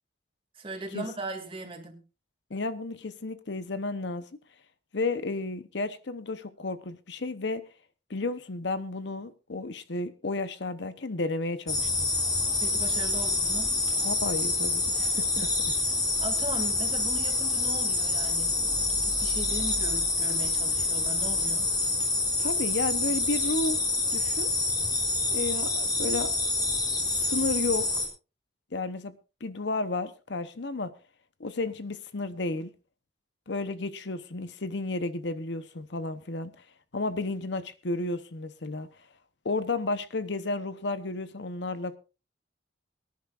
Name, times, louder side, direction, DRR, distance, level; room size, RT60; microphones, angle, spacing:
voice 1, 0.5-2.0 12.6-13.7 15.4-21.7, right 2 dB, 30° right, 2.5 m, -39 dB
voice 2, 2.5-4.3 4.9-7.6 8.1-12.1 14.0-15.3 22.4-24.5 25.3-26.4 27.0-27.9 28.7-29.1 29.4-30.9 31.4-32.7 33.5-36.5 36.9-38.9 39.4-42.0, left 3 dB, 65° left, 0.9 m, -32 dB
sound 1, 11.7-28.1, left 3 dB, 25° left, 3.8 m, -27 dB
23.5 x 10.5 x 2.5 m
head